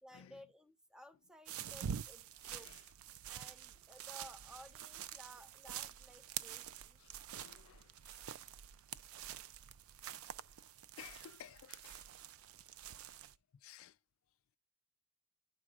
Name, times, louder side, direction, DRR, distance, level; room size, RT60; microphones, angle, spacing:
voice 1, 0.0-2.7 3.3-7.0, equal, 5° right, 0.5 m, -57 dB
sound 1, 1.5-13.4, right 9 dB, 75° right, 0.4 m, -47 dB
voice 2, 2.4-2.8 7.0-8.3 11.0-12.0 13.6-14.0, left 9 dB, 70° left, 0.4 m, -56 dB
12.0 x 4.7 x 2.4 m
head